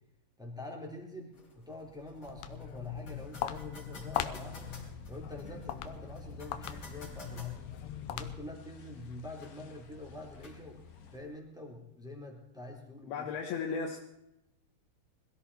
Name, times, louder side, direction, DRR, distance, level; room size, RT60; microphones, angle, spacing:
voice 1, 0.4-4.8 5.1-7.6 8.1-10.8 11.1-13.2, left 1 dB, ahead, -1 dB, 3.0 m, -45 dB
sound 1, 1.3-11.3, left 3 dB, 30° left, 4.6 m, -56 dB
Walk footsteps, 2.1-8.7, left 11 dB, 90° left, 2.9 m, -40 dB
sound 2, 4.3-11.2, left 3 dB, 50° left, 2.3 m, -52 dB
voice 2, 13.1-14.0, left 5 dB, 75° left, 1 dB, 3.3 m, -35 dB
21.5 x 15.5 x 4.3 m, 0.85 s
omnidirectional pair, 4.7 m